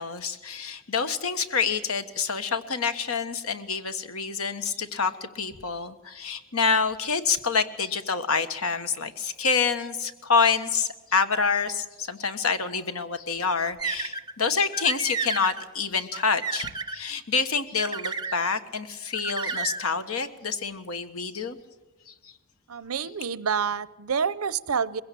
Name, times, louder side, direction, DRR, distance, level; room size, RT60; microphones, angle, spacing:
voice 1, 0.0-21.6 22.1-22.3, left 5 dB, 80° left, 10 dB, 1.4 m, -27 dB
sound 1, 13.8-14.3 14.7-15.6 16.1-17.0 17.8-18.4 19.1-19.9, right 4 dB, 20° right, 0.6 m, -31 dB
voice 2, 22.7-25.0, right 6 dB, 85° right, 18 dB, 0.7 m, -28 dB
21.5 x 16.5 x 7.5 m, 1.1 s
head